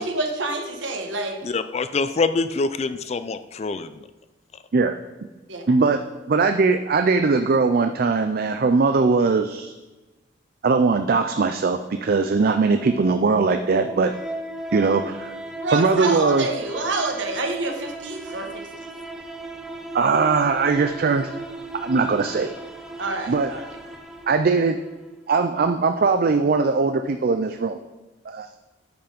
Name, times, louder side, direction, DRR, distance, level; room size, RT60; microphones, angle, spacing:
voice 1, 0.0-1.4 5.5-5.6 15.6-18.9 23.0-23.6, right 2 dB, 70° right, 3 dB, 1.3 m, -28 dB
voice 2, 1.4-3.9, left 4 dB, 35° left, 12 dB, 0.4 m, -25 dB
voice 3, 5.7-6.0 6.3-9.7 10.6-14.1 14.7-15.3 15.7-16.5 19.9-21.3 21.8-22.5 23.3-23.5 24.3-24.8 25.3-27.8 28.3-28.5, right 4 dB, 50° right, 7 dB, 0.4 m, -20 dB
sound 1, 12.2-25.1, right 2 dB, 5° right, 0.7 m, -37 dB
9.0 x 5.6 x 5.2 m, 1.1 s
head